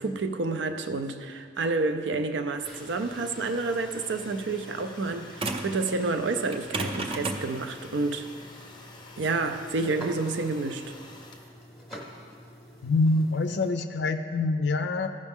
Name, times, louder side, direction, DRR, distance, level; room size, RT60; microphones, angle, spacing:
voice 1, 0.0-8.3 9.2-10.9, right 3 dB, 75° right, 0.5 m, -29 dB
Domestic sounds home sounds, 2.5-11.7, left 2 dB, 25° left, 0.6 m, -50 dB
sound 1, 2.6-13.7, equal, ahead, 0.9 m, -48 dB
sound 2, 5.4-5.8 6.5-11.4, right 2 dB, 30° right, 0.5 m, -34 dB
voice 2, 12.8-15.1, left 3 dB, 70° left, 0.4 m, -25 dB
14.5 x 5.3 x 3.6 m
head